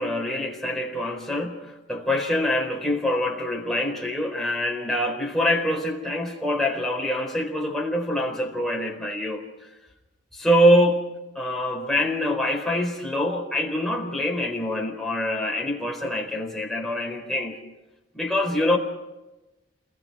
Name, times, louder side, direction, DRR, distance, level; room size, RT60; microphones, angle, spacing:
voice 1, 0.0-9.4 10.3-11.0 11.3-17.6 18.1-18.8, left 1 dB, ahead, 0 dB, 4.0 m, -25 dB
29.0 x 22.0 x 4.8 m, 1.0 s
head